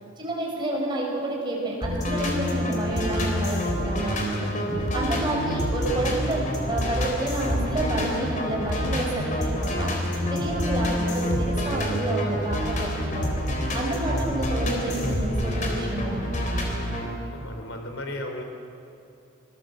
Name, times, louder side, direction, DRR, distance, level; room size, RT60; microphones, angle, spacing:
voice 1, 0.2-4.5 4.9-9.9 10.3-13.3 13.7-16.3, right 1 dB, 20° right, -2 dB, 5.6 m, -29 dB
sound 1, 1.8-17.1, equal, 40° left, 4.0 m, -27 dB
voice 2, 17.3-18.4, left 1 dB, 75° left, 4 dB, 4.0 m, -35 dB
26.0 x 20.0 x 7.9 m, 2.6 s
head